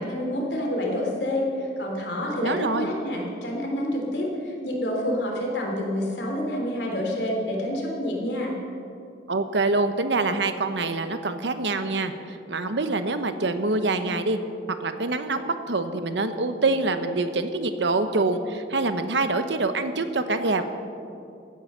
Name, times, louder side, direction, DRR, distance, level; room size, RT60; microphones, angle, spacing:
voice 1, 0.0-8.5, left 1 dB, 75° left, 0 dB, 3.3 m, -28 dB
voice 2, 2.4-2.9 9.3-14.4 14.8-20.6, right 3 dB, 85° right, 9 dB, 1.0 m, -25 dB
16.0 x 9.7 x 6.8 m, 2.6 s
head